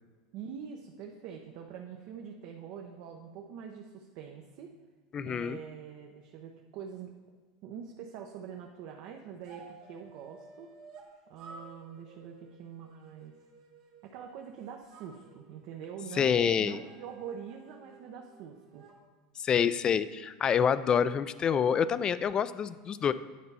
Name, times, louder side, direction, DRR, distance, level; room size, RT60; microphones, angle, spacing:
voice 1, 0.3-4.7 5.2-7.1 7.6-10.7 11.3-13.3 14.0-18.8, right 7 dB, 55° right, 2 dB, 0.7 m, -44 dB
voice 2, 5.1-5.6 16.1-16.8 19.4-23.1, left 7 dB, 25° left, 15 dB, 0.3 m, -27 dB
sound 1, 9.4-11.1 11.4-14.5 14.9-19.0, right 3 dB, 90° right, 1.8 m, -54 dB
9.4 x 4.1 x 5.5 m, 1.4 s
supercardioid pair, 130°, 3 cm